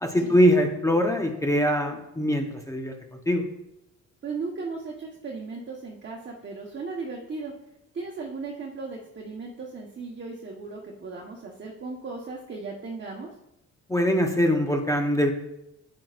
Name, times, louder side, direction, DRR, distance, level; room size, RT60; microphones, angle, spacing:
voice 1, 0.0-2.9 3.3-3.4 13.9-15.3, equal, 10° left, 2 dB, 1.0 m, -22 dB
voice 2, 4.2-7.5 7.9-13.3, right 4 dB, 40° right, -2 dB, 1.3 m, -36 dB
8.5 x 8.0 x 2.5 m, 0.86 s
cardioid pair, 90°, 30 cm